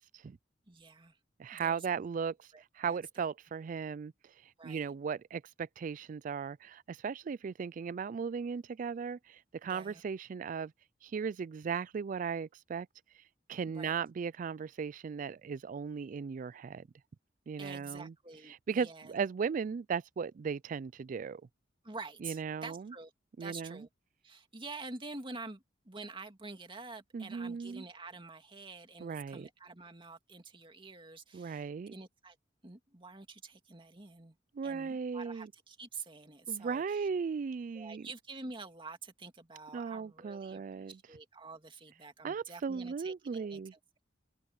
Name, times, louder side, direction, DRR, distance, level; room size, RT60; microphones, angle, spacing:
voice 1, 0.7-1.2 1.5-2.1 2.5-3.2 4.6-5.0 9.6-10.0 13.7-14.0 17.6-19.2 21.8-23.1 23.4-23.9 24.2-32.4 32.6-34.4 34.6-37.1 37.7-44.0, right 3 dB, 30° right, 2.3 m, -47 dB
voice 2, 1.4-2.5 2.8-4.1 4.6-10.7 11.0-12.9 13.5-16.9 17.5-18.1 18.7-21.4 22.2-22.9 23.4-23.9 27.1-27.8 29.0-29.5 31.3-31.9 34.5-35.5 36.5-38.1 39.7-41.0 42.2-43.7, right 6 dB, 45° right, 0.3 m, -37 dB
head